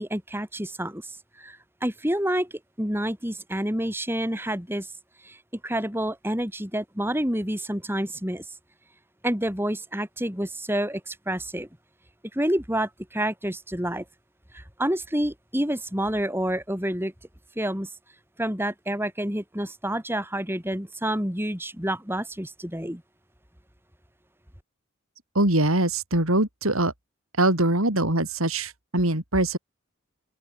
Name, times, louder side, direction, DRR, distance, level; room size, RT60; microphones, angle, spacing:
voice 1, 0.0-2.5 2.8-4.9 5.2-5.4 5.6-8.5 9.2-11.7 12.3-14.0 14.5-17.1 17.6-17.9 18.4-23.0, right 1 dB, 10° right, 4.3 m, -28 dB
voice 2, 25.4-26.9 27.4-29.6, right 1 dB, 80° right, 5.2 m, -23 dB
open air
head